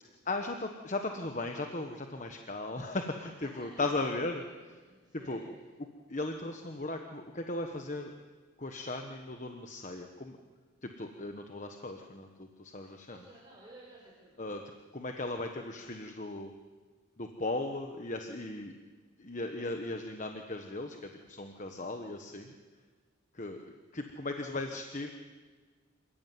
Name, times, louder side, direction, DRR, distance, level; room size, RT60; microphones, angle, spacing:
voice 1, 0.2-4.4 5.3-5.4 6.1-8.1 8.6-10.4 10.8-13.2 14.4-14.6 14.9-16.5 17.2-18.8 19.2-22.5 23.3-23.6 23.9-25.1, left 2 dB, 35° left, 5 dB, 1.3 m, -37 dB
voice 2, 3.4-4.5 4.9-5.5 13.1-14.3, right 1 dB, 20° right, -5 dB, 5.4 m, -53 dB
27.0 x 15.0 x 9.5 m, 1.4 s
head